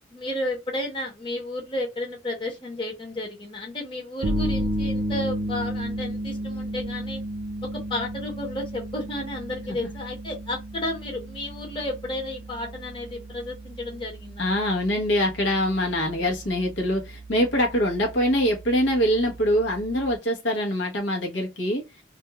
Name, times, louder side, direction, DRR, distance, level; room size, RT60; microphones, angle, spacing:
voice 1, 0.1-7.2 7.7-14.4, left 1 dB, 25° left, 0.8 m, -32 dB
sound 1, 4.2-20.1, equal, 75° right, 0.5 m, -33 dB
voice 2, 14.4-21.8, equal, 80° left, 0.9 m, -24 dB
2.5 x 2.3 x 2.8 m
head